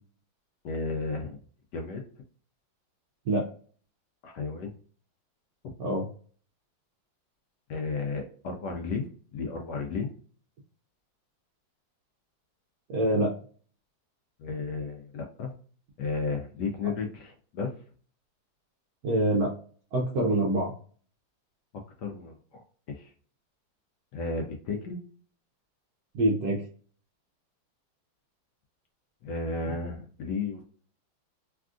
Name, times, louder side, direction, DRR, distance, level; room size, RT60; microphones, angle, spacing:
voice 1, 0.6-1.4 1.7-2.0 4.2-4.7 7.7-9.0 9.3-10.1 14.4-15.5 16.0-17.7 22.0-22.6 22.9-23.1 24.1-25.0 29.2-30.7, left 4 dB, 75° left, 3 dB, 1.0 m, -33 dB
voice 2, 12.9-13.3 19.0-19.5 19.9-20.7 26.1-26.6, right 1 dB, 70° right, -1 dB, 0.9 m, -25 dB
3.4 x 2.4 x 2.4 m, 0.44 s
omnidirectional pair, 2.2 m